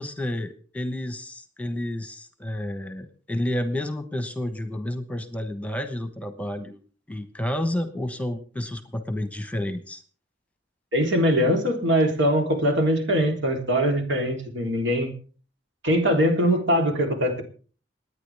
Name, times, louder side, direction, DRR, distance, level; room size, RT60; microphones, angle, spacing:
voice 1, 0.0-6.8 7.1-10.0, left 1 dB, 5° left, 8 dB, 1.1 m, -30 dB
voice 2, 10.9-15.1 15.8-17.4, equal, 80° right, 2 dB, 3.5 m, -22 dB
28.0 x 9.8 x 3.5 m, 0.40 s
head